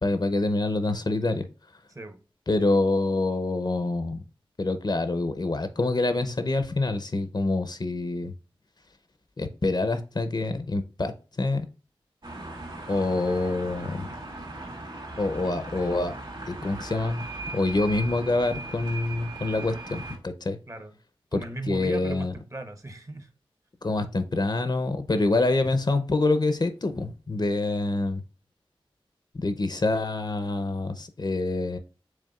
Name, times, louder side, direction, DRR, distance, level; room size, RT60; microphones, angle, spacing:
voice 1, 0.0-1.5 2.5-4.2 4.6-8.3 9.4-11.1 11.4-11.7 12.9-14.1 15.2-16.1 16.5-17.2 17.5-20.6 21.3-22.3 23.8-28.2 29.3-31.8, left 2 dB, 45° left, 0.6 m, -26 dB
sound 1, 12.2-20.2, right 2 dB, 60° right, 2.1 m, -38 dB
voice 2, 21.3-23.3, right 2 dB, 35° right, 0.8 m, -37 dB
6.4 x 3.6 x 2.3 m
wide cardioid pair, 55°, 10 cm